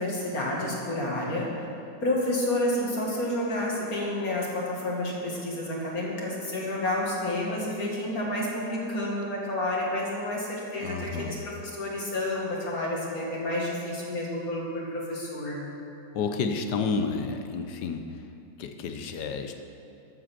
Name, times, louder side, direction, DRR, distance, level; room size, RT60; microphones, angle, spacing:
voice 1, 0.0-1.7 2.0-15.6, left 1 dB, 50° left, -4 dB, 2.5 m, -30 dB
voice 2, 10.8-11.4 16.1-18.3 18.6-19.6, left 4 dB, 70° left, 6 dB, 1.3 m, -31 dB
13.0 x 7.7 x 5.9 m, 2.7 s
omnidirectional pair, 2.0 m